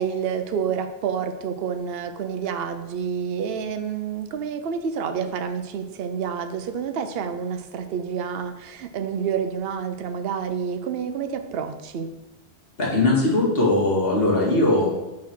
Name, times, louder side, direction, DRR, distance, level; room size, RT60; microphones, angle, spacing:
voice 1, 0.0-12.1, right 7 dB, 65° right, 7 dB, 0.8 m, -28 dB
voice 2, 12.8-14.9, left 2 dB, 60° left, -4 dB, 2.2 m, -20 dB
6.1 x 4.4 x 6.0 m, 1.0 s
omnidirectional pair, 1.1 m